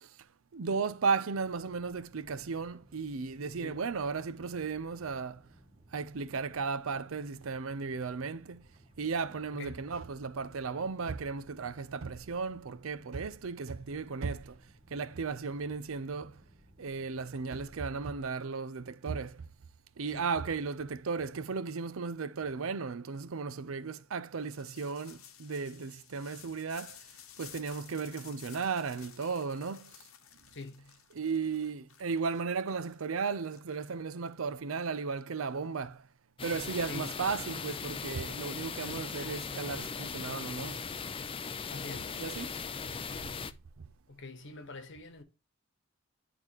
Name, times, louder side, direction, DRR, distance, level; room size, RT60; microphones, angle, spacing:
voice 1, 0.5-5.4 5.9-8.7 9.0-14.6 14.9-16.4 16.8-19.4 20.0-27.0 27.4-29.9 31.1-36.1 36.4-40.8 42.1-42.5 43.2-43.3, right 5 dB, 70° right, 0.6 m, -35 dB
sound 1, 1.3-18.1, right 1 dB, 30° right, 1.7 m, -61 dB
voice 2, 9.5-9.9 20.1-20.3 30.5-31.0 36.9-37.3 41.7-42.2 44.1-45.2, left 3 dB, 60° left, 1.3 m, -45 dB
sound 2, 24.4-34.3, left 10 dB, 75° left, 1.0 m, -54 dB
sound 3, 36.4-43.5, left 5 dB, 25° left, 0.5 m, -39 dB
11.0 x 3.9 x 3.0 m
head